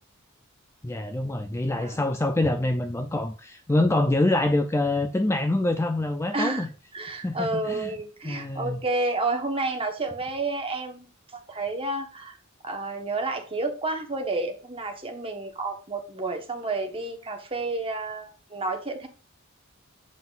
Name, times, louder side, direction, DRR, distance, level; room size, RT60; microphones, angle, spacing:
voice 1, 0.8-6.7 7.2-7.9 8.2-8.8, left 2 dB, 15° left, 0.4 m, -25 dB
voice 2, 1.8-2.1 6.3-6.7 6.9-11.1 11.5-12.4 12.6-19.1, right 2 dB, 25° right, 1.2 m, -30 dB
7.4 x 5.8 x 2.5 m
head